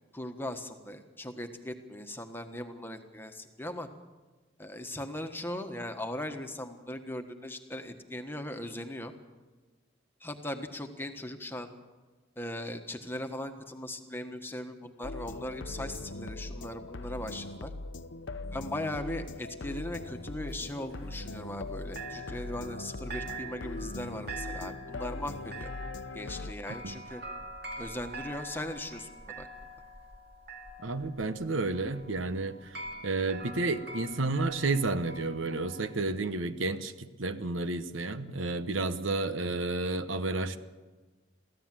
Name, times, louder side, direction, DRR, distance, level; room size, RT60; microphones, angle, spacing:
voice 1, 0.1-3.9 4.6-9.1 10.2-11.7 12.4-17.7 18.5-25.7 26.1-27.2 27.8-29.5, left 1 dB, 10° left, 6 dB, 1.4 m, -39 dB
sound 1, 15.0-26.5, left 2 dB, 70° left, 0.8 m, -40 dB
sound 2, 19.8-21.7 22.0-35.9, right 2 dB, 55° right, 2.5 m, -45 dB
voice 2, 30.8-32.6 33.0-40.6, right 3 dB, 85° right, 11 dB, 1.1 m, -31 dB
23.5 x 15.5 x 7.7 m, 1.3 s
head